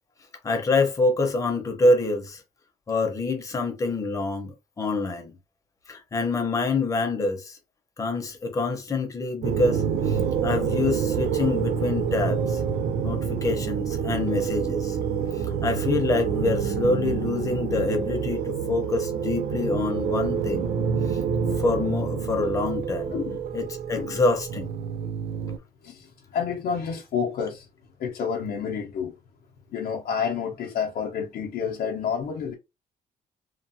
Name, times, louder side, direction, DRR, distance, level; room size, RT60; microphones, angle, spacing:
voice 1, 0.4-2.4 2.9-5.4 5.9-7.6 8.0-12.6 13.0-15.0 15.6-20.7 21.1-21.2 21.6-23.1 23.5-24.7, left 3 dB, 20° left, 0.6 m, -26 dB
sound 1, 9.4-25.6, right 7 dB, 80° right, 0.4 m, -27 dB
voice 2, 23.1-23.4 23.9-24.2 25.8-26.1 26.3-27.7 28.0-29.1 29.7-32.5, left 6 dB, 70° left, 0.5 m, -29 dB
2.9 x 2.1 x 2.6 m
cardioid pair, 170°, 15 cm